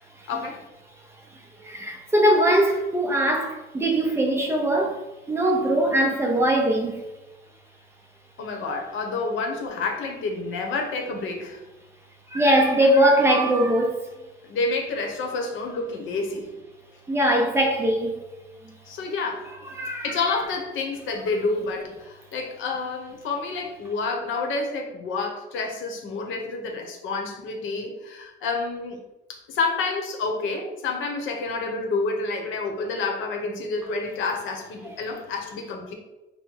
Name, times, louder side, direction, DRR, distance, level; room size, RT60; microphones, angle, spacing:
voice 1, 0.3-0.6 8.4-11.6 14.4-16.5 18.9-19.4 20.0-29.0 29.3-35.9, left 3 dB, 80° left, 0.9 m, -29 dB
voice 2, 1.6-5.0 5.3-7.0 12.3-14.0 17.1-18.2 19.8-20.0, right 1 dB, 10° right, 0.5 m, -21 dB
5.5 x 2.1 x 4.4 m
cardioid pair, 175°, 20 cm